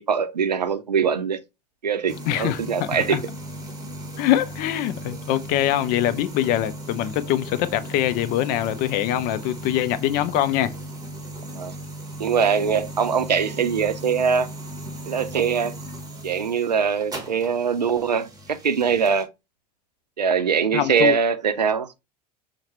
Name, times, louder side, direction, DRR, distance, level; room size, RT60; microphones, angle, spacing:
voice 1, 0.0-1.4 1.8-3.2 11.6-11.7 12.2-14.5 15.1-15.8 16.2-19.3 20.2-21.9, right 6 dB, 85° right, 0.5 m, -22 dB
sound 1, 2.1-19.2, right 1 dB, 20° right, 1.2 m, -37 dB
voice 2, 2.3-3.2 4.2-10.7 20.7-21.2, left 12 dB, 45° left, 0.4 m, -23 dB
5.6 x 2.1 x 3.0 m
figure-of-eight pair, 75°, 21 cm